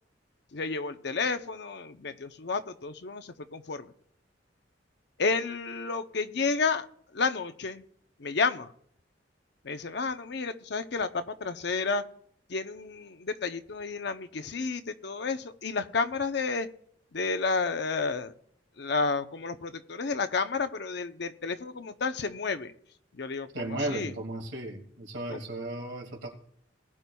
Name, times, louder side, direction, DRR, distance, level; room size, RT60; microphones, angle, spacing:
voice 1, 0.5-3.9 5.2-6.9 7.1-7.8 8.2-8.7 9.6-12.0 12.5-16.7 17.1-18.3 18.8-22.7 23.1-24.1 25.3-25.4, left 4 dB, 65° left, 9 dB, 0.7 m, -31 dB
voice 2, 23.5-26.3, right 1 dB, 80° right, 1 dB, 2.2 m, -35 dB
19.5 x 9.9 x 2.3 m, 0.66 s
head